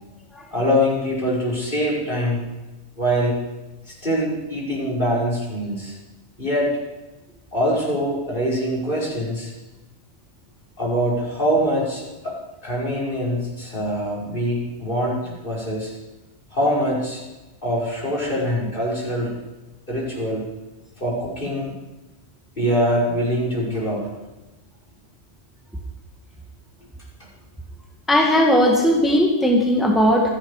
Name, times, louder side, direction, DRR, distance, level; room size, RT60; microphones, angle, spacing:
voice 1, 0.5-2.4 3.0-3.4 3.9-6.0 6.4-6.7 7.5-9.5 10.8-12.3 12.6-15.9 16.5-17.2 17.6-19.3 19.9-20.5 21.0-21.7 22.6-24.1, equal, 45° left, -4 dB, 5.6 m, -23 dB
voice 2, 28.1-30.3, equal, ahead, -1 dB, 1.9 m, -17 dB
27.0 x 10.5 x 4.9 m, 1.1 s
omnidirectional pair, 1.3 m